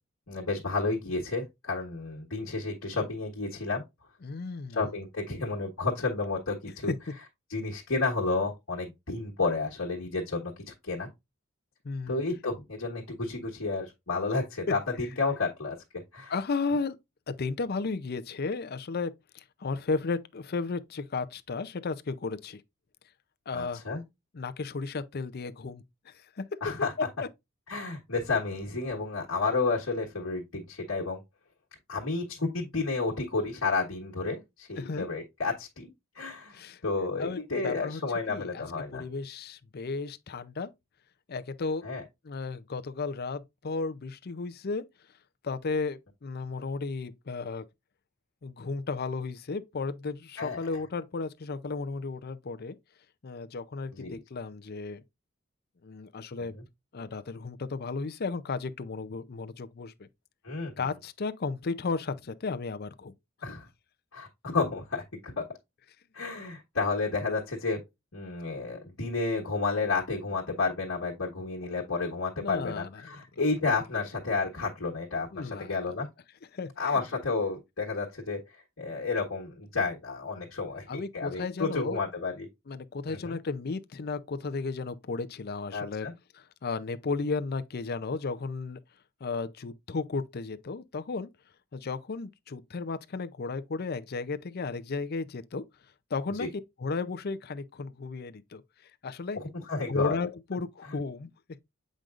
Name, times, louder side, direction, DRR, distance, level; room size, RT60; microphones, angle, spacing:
voice 1, 0.3-3.8 4.7-6.9 7.5-11.1 12.1-16.3 23.5-24.0 26.6-26.9 27.7-31.2 31.9-35.9 36.1-39.0 41.8-42.0 50.4-50.7 53.9-54.2 56.5-56.6 60.4-60.9 63.4-63.7 64.1-65.5 66.1-67.8 68.1-76.1 76.8-82.5 83.1-83.4 85.7-86.1 96.4-96.5 99.3-100.2, left 3 dB, 85° left, 1.4 m, -31 dB
voice 2, 4.2-4.8 6.9-7.0 11.8-12.2 16.3-17.0 17.3-22.6 23.5-23.8 24.3-26.4 34.8-35.0 36.5-36.8 37.2-38.0 38.3-38.6 38.9-40.7 41.3-41.8 42.2-44.8 45.4-47.6 48.4-52.8 53.2-55.0 55.8-56.5 56.9-60.1 60.8-63.1 72.4-73.2 75.3-75.8 76.5-77.0 80.9-82.0 82.7-86.1 86.3-88.8 89.2-91.3 91.7-95.6 96.1-96.5 96.8-98.6 99.0-99.4 99.9-101.3, left 4 dB, 50° left, 0.5 m, -34 dB
7.7 x 5.1 x 2.5 m
head